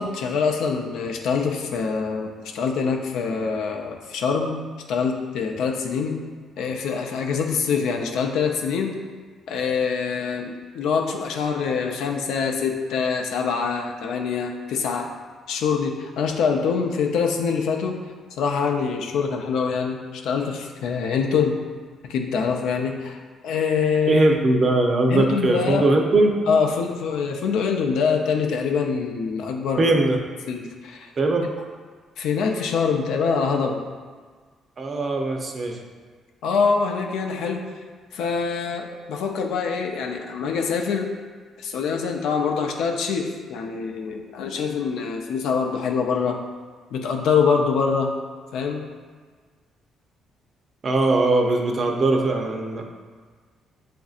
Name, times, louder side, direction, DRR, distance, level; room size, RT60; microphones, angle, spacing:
voice 1, 0.0-4.6 4.9-6.2 6.6-9.0 9.5-15.1 15.5-18.0 18.4-21.6 22.0-24.2 25.1-25.9 26.5-29.9 30.5-31.1 32.2-33.8 36.4-37.6 38.1-41.1 41.6-46.4 46.9-48.1 48.5-48.8, left 5 dB, 85° left, 2 dB, 0.4 m, -24 dB
voice 2, 24.1-26.3 29.8-30.2 31.2-31.4 34.8-35.8 50.8-52.8, right 2 dB, 40° right, 2 dB, 0.6 m, -20 dB
7.0 x 2.6 x 2.4 m, 1.5 s
cardioid pair, 90°, 0 cm